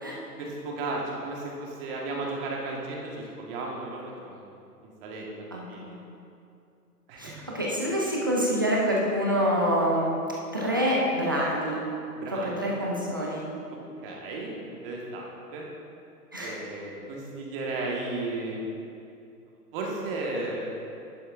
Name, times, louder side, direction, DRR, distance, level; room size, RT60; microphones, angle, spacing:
voice 1, 0.4-4.5 5.0-5.2 5.7-5.8 7.1-7.3 12.1-12.6 14.0-14.6 14.8-15.7 16.4-18.7 19.7-20.7, right 2 dB, 35° right, -2 dB, 1.6 m, -34 dB
voice 2, 5.5-6.0 7.2-10.1 10.5-11.8 12.3-13.5 16.3-16.6, equal, 15° right, -4 dB, 0.3 m, -26 dB
11.0 x 8.7 x 2.6 m, 2.6 s
hypercardioid pair, 130°, 48 cm